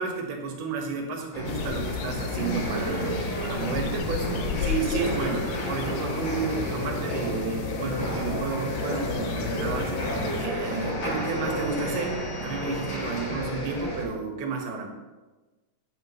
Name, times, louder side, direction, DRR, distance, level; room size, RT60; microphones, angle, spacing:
voice 1, 0.0-9.9 10.4-12.2 12.4-14.9, right 4 dB, 80° right, 2 dB, 3.5 m, -32 dB
sound 1, 1.3-14.1, right 1 dB, 50° left, 3.3 m, -31 dB
sound 2, 1.5-10.5, left 11 dB, 80° left, 2.1 m, -34 dB
13.5 x 9.5 x 3.2 m, 1.2 s
omnidirectional pair, 4.5 m